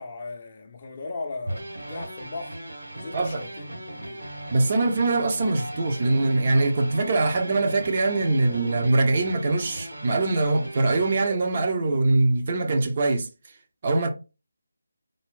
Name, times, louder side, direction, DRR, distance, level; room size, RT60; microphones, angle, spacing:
voice 1, 0.0-2.6 3.0-4.3, left 3 dB, 30° left, 0.5 m, -38 dB
sound 1, 1.5-11.3, right 1 dB, 65° right, 1.6 m, -37 dB
voice 2, 4.5-13.3 13.8-14.1, right 2 dB, 30° right, 0.6 m, -23 dB
3.9 x 2.4 x 3.6 m
figure-of-eight pair, 155°, 0 cm